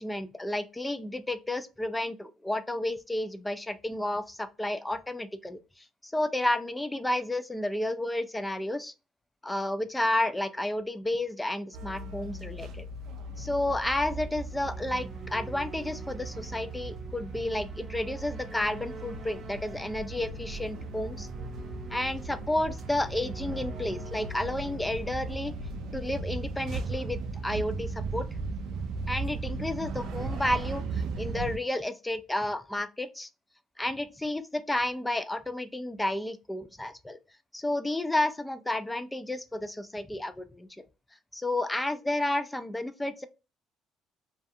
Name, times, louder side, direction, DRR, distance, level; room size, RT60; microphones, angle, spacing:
voice 1, 0.0-8.9 9.4-12.9 13.4-21.3 21.9-25.5 25.9-28.2 29.1-33.3 33.8-37.2 37.5-40.8 41.3-43.3, left 1 dB, 10° left, 0.3 m, -31 dB
sound 1, 11.7-31.6, right 3 dB, 70° right, 0.3 m, -37 dB
sound 2, 14.2-26.6, right 3 dB, 30° right, 0.7 m, -47 dB
2.4 x 2.3 x 2.6 m
cardioid pair, 95°, 0 cm